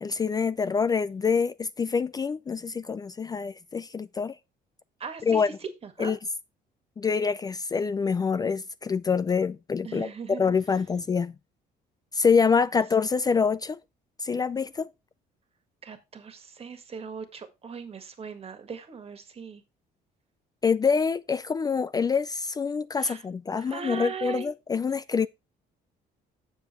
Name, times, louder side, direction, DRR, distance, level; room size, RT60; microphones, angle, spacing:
voice 1, 0.0-4.3 5.2-5.5 6.0-6.2 7.0-11.3 12.1-13.8 14.2-14.9 20.6-25.3, left 5 dB, 20° left, 0.4 m, -26 dB
voice 2, 5.0-5.4 5.8-6.1 9.8-10.4 15.8-19.6 23.0-23.2 23.6-24.5, right 6 dB, 35° right, 1.8 m, -39 dB
7.3 x 7.2 x 4.3 m
cardioid pair, 110°, 17 cm